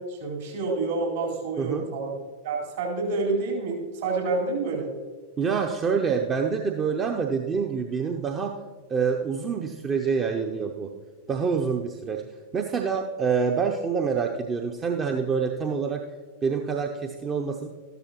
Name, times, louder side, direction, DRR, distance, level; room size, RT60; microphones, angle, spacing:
voice 1, 0.1-2.2 2.4-4.9, right 3 dB, 60° right, -2 dB, 4.0 m, -28 dB
voice 2, 1.6-1.9 5.4-8.5 8.9-10.9 11.3-12.2 12.5-16.0 16.4-17.7, right 5 dB, 25° right, 3 dB, 0.7 m, -26 dB
13.5 x 12.0 x 3.0 m, 1.4 s
figure-of-eight pair, 90°, 0 cm